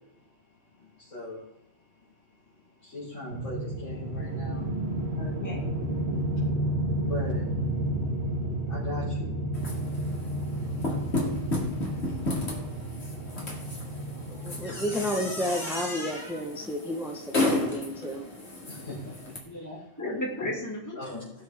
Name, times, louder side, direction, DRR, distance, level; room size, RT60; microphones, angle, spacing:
voice 1, 0.8-1.5 2.6-4.7 7.0-7.4 8.7-9.3 18.7-19.8 20.9-21.3, left 1 dB, 85° left, -10 dB, 4.2 m, -39 dB
sound 1, 3.3-15.5, right 1 dB, 60° right, 1.9 m, -31 dB
voice 2, 5.2-5.7 18.8-18.9 19.4-21.0, left 1 dB, 15° left, -3 dB, 2.3 m, -35 dB
sound 2, 9.5-19.4, left 2 dB, 60° left, 2.5 m, -33 dB
voice 3, 14.4-18.3, equal, ahead, 2 dB, 0.9 m, -32 dB
17.5 x 6.6 x 3.5 m, 0.83 s
omnidirectional pair, 1.3 m